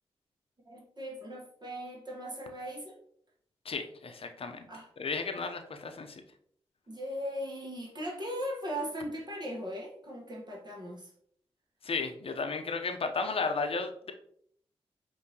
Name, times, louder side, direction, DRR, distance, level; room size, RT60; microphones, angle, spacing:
voice 1, 0.6-3.0 4.7-4.9 6.9-11.1, equal, 40° right, -2 dB, 1.2 m, -38 dB
voice 2, 3.6-4.6 5.0-6.2 11.8-14.1, left 4 dB, 55° left, 6 dB, 0.7 m, -34 dB
5.2 x 2.7 x 2.8 m, 0.64 s
cardioid pair, 45°, 11 cm